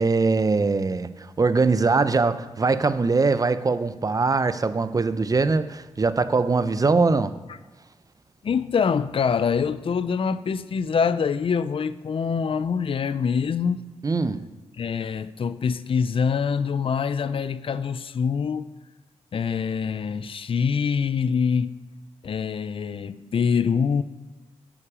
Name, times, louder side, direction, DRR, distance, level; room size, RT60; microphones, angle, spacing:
voice 1, 0.0-7.4 14.0-14.4, right 4 dB, 30° right, 0.5 m, -22 dB
voice 2, 8.4-13.8 14.8-18.7 19.3-21.8 22.2-24.0, left 6 dB, 50° left, 0.4 m, -25 dB
9.8 x 7.2 x 4.9 m
cardioid pair, 85°, 12 cm